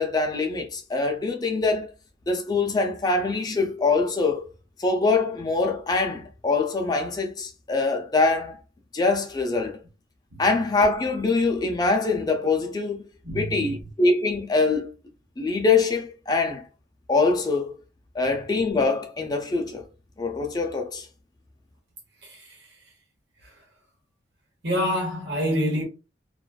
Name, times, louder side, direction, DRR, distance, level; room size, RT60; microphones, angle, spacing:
voice 1, 0.0-1.9 2.3-4.5 4.8-8.6 8.9-9.8 10.4-13.0 13.3-14.9 15.4-16.6 17.1-17.7 18.1-19.8 20.2-21.1, left 3 dB, 20° left, 0.4 m, -24 dB
voice 2, 10.3-10.6 13.2-13.9 18.2-18.4 22.2-22.7 23.4-23.6 24.6-25.8, equal, 85° right, 1.0 m, -28 dB
2.4 x 2.3 x 2.3 m
head